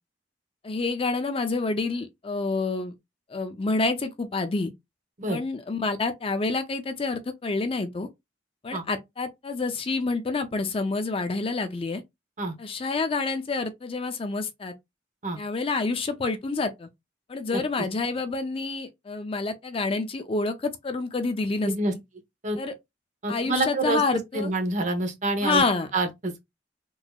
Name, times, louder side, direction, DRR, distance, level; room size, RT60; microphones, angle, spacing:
voice 1, 0.6-2.9 3.3-4.7 5.3-8.1 8.6-12.0 12.6-14.7 15.4-16.9 17.3-22.0 22.6-22.7 23.3-24.5 25.4-25.9, left 3 dB, 30° left, 0.4 m, -28 dB
voice 2, 23.2-25.6 25.9-26.4, right 2 dB, 45° right, 0.9 m, -27 dB
3.8 x 2.9 x 2.3 m
head